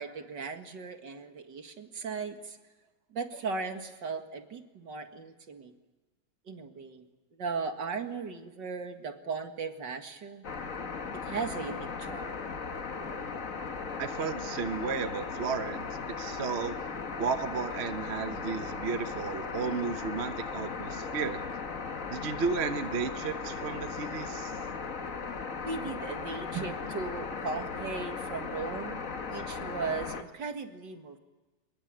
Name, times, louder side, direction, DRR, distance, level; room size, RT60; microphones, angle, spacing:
voice 1, 0.0-2.6 3.1-5.7 6.5-7.1 7.3-10.4 11.2-12.4 25.7-31.2, right 4 dB, 65° right, 6 dB, 2.5 m, -37 dB
sound 1, 10.4-30.2, left 5 dB, 45° left, 1.8 m, -37 dB
voice 2, 14.0-15.9 16.2-16.8 17.2-21.4 22.1-24.5, right 5 dB, 40° right, 9 dB, 1.1 m, -33 dB
24.5 x 21.5 x 8.9 m, 1.2 s
omnidirectional pair, 2.1 m